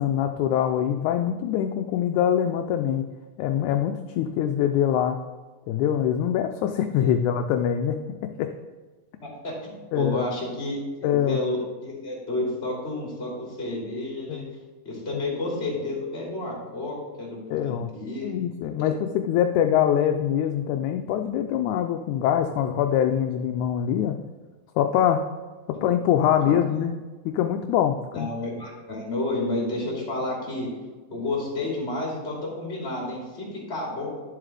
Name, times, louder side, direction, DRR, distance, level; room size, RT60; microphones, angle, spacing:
voice 1, 0.0-3.1 3.4-5.2 5.7-8.0 8.2-8.5 9.9-10.3 11.0-11.4 14.3-14.4 17.5-17.9 18.2-24.2 24.8-25.2 25.7-27.0 27.3-28.3, left 9 dB, 80° left, 6 dB, 1.8 m, -24 dB
voice 2, 9.2-10.8 11.1-14.4 14.8-18.4 18.8-18.9 25.7-25.8 26.4-26.5 28.1-30.7 31.1-34.1, left 2 dB, 20° left, -4 dB, 2.8 m, -31 dB
11.0 x 7.4 x 3.4 m, 1.3 s
omnidirectional pair, 3.7 m